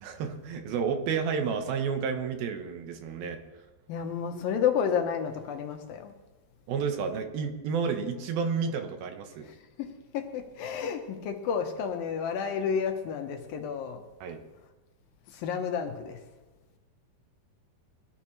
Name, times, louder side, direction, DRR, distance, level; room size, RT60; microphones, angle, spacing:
voice 1, 0.0-3.4 6.7-9.5 14.2-14.4, right 6 dB, 75° right, 2.8 m, -31 dB
voice 2, 3.9-6.1 9.5-14.0 15.3-16.2, left 7 dB, 70° left, 2.6 m, -31 dB
21.5 x 13.5 x 3.2 m
omnidirectional pair, 4.5 m